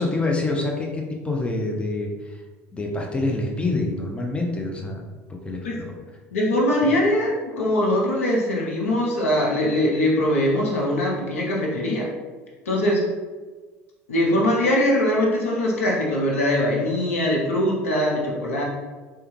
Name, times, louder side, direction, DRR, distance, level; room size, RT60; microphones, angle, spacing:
voice 1, 0.0-2.4 2.7-5.0 5.3-5.9 6.8-6.9, left 2 dB, 15° left, 0 dB, 0.6 m, -26 dB
voice 2, 6.3-12.1 12.7-13.0 14.1-18.6, left 1 dB, 90° left, -3 dB, 0.7 m, -22 dB
3.4 x 2.2 x 3.1 m, 1.3 s
hypercardioid pair, 75°, 7 cm